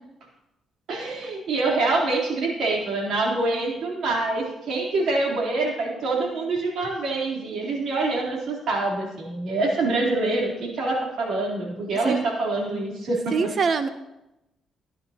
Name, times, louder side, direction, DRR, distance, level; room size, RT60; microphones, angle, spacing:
voice 1, 0.9-13.5, right 2 dB, 70° right, -3 dB, 3.5 m, -25 dB
voice 2, 13.3-13.9, right 5 dB, 50° right, 11 dB, 0.7 m, -23 dB
15.0 x 10.0 x 2.9 m, 0.94 s
cardioid pair, 90°, 0 cm